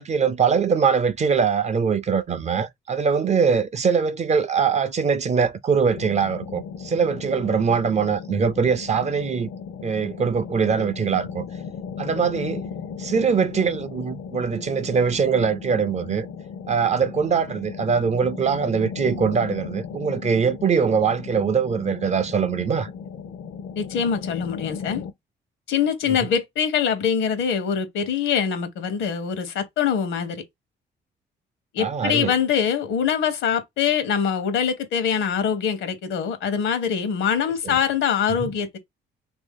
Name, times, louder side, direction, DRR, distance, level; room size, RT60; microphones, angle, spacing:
voice 1, 0.0-9.5 9.8-11.4 12.0-12.6 13.0-16.3 16.7-22.9 26.2-26.3 31.8-32.3 37.6-37.8 38.4-38.5, right 6 dB, 35° right, 0.4 m, -22 dB
sound 1, 5.9-25.1, left 6 dB, 65° left, 0.5 m, -36 dB
voice 2, 23.8-25.0 25.7-30.4 31.7-38.8, left 7 dB, 85° left, 0.9 m, -24 dB
3.0 x 2.6 x 3.6 m
cardioid pair, 90°, 20 cm